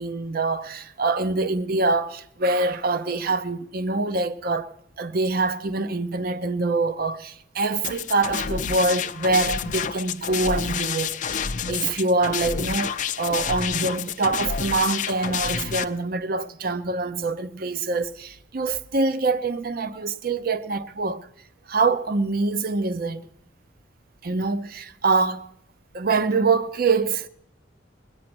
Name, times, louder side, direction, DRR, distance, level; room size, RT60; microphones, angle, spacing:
voice 1, 0.0-4.7 5.0-21.3 21.7-23.3 24.2-25.5 25.9-27.3, right 3 dB, 50° right, 0.6 m, -25 dB
sound 1, 7.8-15.8, left 7 dB, 40° left, 0.5 m, -29 dB
21.0 x 9.1 x 5.9 m
head